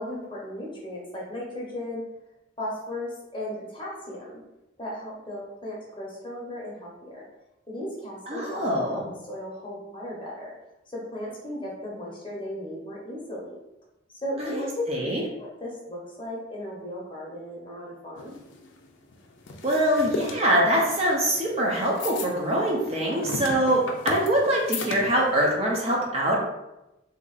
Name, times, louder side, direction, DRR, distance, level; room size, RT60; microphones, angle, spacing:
voice 1, 0.0-2.0 2.6-4.4 4.8-7.2 7.7-9.0 9.3-10.5 10.9-13.6 14.2-15.1 15.4-18.3, left 1 dB, 25° left, -4 dB, 0.8 m, -36 dB
voice 2, 8.3-9.1 14.4-15.2 19.6-26.4, right 1 dB, 30° right, -3 dB, 0.6 m, -24 dB
sound 1, 18.2-25.5, left 3 dB, 65° left, 0.4 m, -36 dB
2.8 x 2.4 x 3.9 m, 0.93 s
head